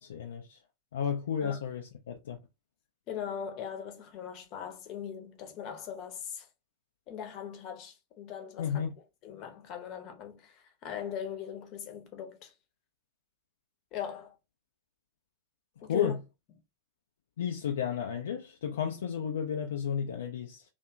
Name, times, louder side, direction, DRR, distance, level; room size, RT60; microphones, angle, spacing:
voice 1, 0.0-0.6 0.9-2.4 8.6-8.9 15.9-16.2 17.4-20.6, left 8 dB, 60° left, 0.3 m, -32 dB
voice 2, 3.1-6.5 7.1-8.8 9.2-12.5 13.9-14.3 15.8-16.1, left 8 dB, 40° left, 0.7 m, -40 dB
2.6 x 2.3 x 2.5 m
figure-of-eight pair, 90°, 0 cm